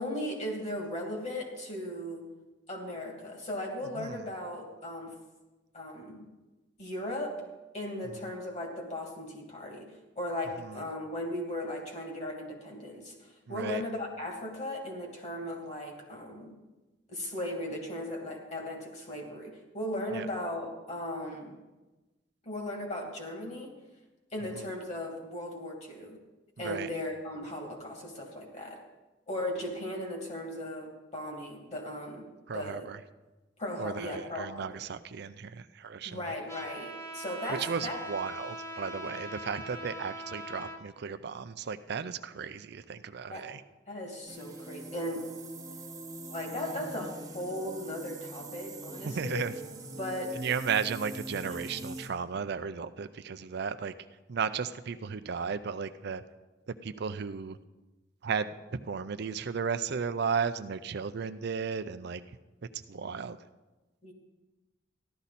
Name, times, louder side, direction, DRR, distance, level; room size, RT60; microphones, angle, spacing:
voice 1, 0.0-2.2 2.7-5.1 5.7-6.3 6.8-7.4 7.7-16.5 17.1-21.6 22.4-23.7 24.3-26.2 26.6-28.8 29.3-32.3 32.5-32.9 33.6-34.7 36.0-38.0 43.3-43.5 43.9-45.3 46.3-49.5 49.9-50.4 64.0-64.1, left 1 dB, 40° left, 1 dB, 2.4 m, -37 dB
voice 2, 4.0-4.3 10.6-10.8 13.5-13.8 20.1-20.3 26.6-26.9 32.5-33.0 33.8-36.3 37.6-43.6 49.0-49.5 50.4-53.9 54.3-56.2 56.7-57.6 58.2-62.2 62.7-63.4, right 6 dB, 60° right, 11 dB, 0.5 m, -34 dB
Trumpet, 36.5-40.8, equal, 15° left, 1.3 m, -41 dB
sound 1, 44.3-52.1, right 2 dB, 20° right, 1.2 m, -43 dB
14.0 x 12.0 x 4.2 m, 1.1 s
head